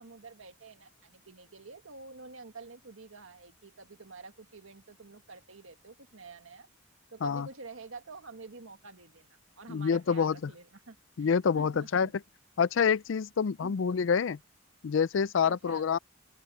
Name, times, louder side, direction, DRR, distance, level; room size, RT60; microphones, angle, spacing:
voice 1, 0.0-6.7 7.1-12.1 13.6-13.7 15.4-15.9, right 4 dB, 80° right, 1.9 m, -49 dB
voice 2, 9.7-10.5 11.2-12.1 12.6-14.4 14.8-16.0, left 6 dB, 65° left, 0.4 m, -27 dB
open air
head